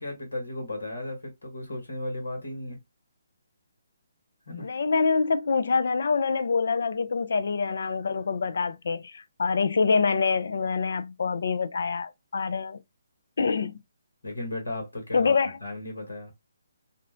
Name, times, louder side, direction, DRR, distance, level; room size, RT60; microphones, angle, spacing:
voice 1, 0.0-2.8 4.5-4.7 14.2-15.4 15.6-16.3, left 2 dB, 85° left, 1.2 m, -35 dB
voice 2, 4.6-12.8 13.4-13.8 15.1-15.6, left 5 dB, 70° left, 0.4 m, -25 dB
2.5 x 2.1 x 3.7 m
hypercardioid pair, 145°, 0 cm